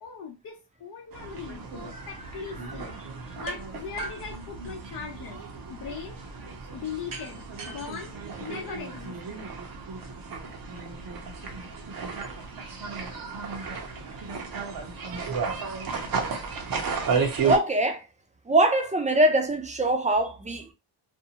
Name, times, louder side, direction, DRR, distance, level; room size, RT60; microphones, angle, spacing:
voice 1, 0.0-3.0 3.4-5.4 5.7-6.2 6.7-9.5, left 6 dB, 55° left, 0.7 m, -39 dB
sound 1, 1.1-17.6, right 5 dB, 55° right, 0.8 m, -34 dB
sound 2, 3.5-3.6 4.0-5.2 7.1-9.1, right 3 dB, 70° right, 1.3 m, -42 dB
voice 2, 17.4-18.0 18.5-20.7, right 1 dB, 15° right, 0.5 m, -23 dB
2.6 x 2.2 x 2.8 m
cardioid pair, 95°, 43 cm